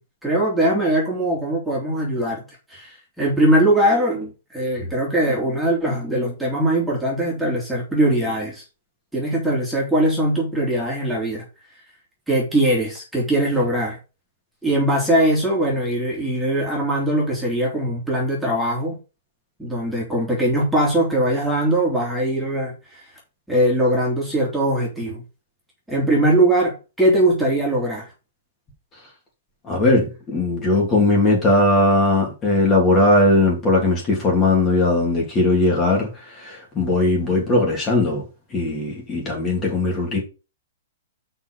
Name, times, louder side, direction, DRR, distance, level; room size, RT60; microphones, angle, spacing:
voice 1, 0.2-2.4 2.7-8.6 9.1-11.4 12.3-14.0 14.6-19.0 19.6-23.0 23.5-25.2 25.9-28.1, right 1 dB, ahead, 2.8 m, -21 dB
voice 2, 29.6-38.2 38.5-40.2, left 2 dB, 15° left, 2.8 m, -19 dB
6.0 x 5.6 x 6.6 m
hypercardioid pair, 165°, 0 cm